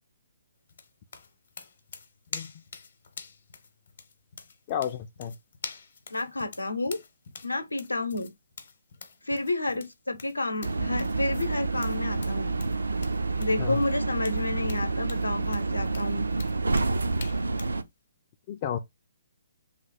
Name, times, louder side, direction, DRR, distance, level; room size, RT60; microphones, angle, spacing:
sound 1, 0.7-17.8, left 5 dB, 55° left, 0.8 m, -45 dB
voice 1, 4.7-5.3 13.6-13.8 18.5-18.8, left 9 dB, 35° left, 0.4 m, -31 dB
voice 2, 6.1-7.0 7.4-8.3 9.2-12.6 13.4-16.3, left 2 dB, 85° left, 0.7 m, -30 dB
sound 2, 10.6-17.8, right 3 dB, 75° right, 0.5 m, -28 dB
3.2 x 2.2 x 4.1 m
figure-of-eight pair, 130°, 0 cm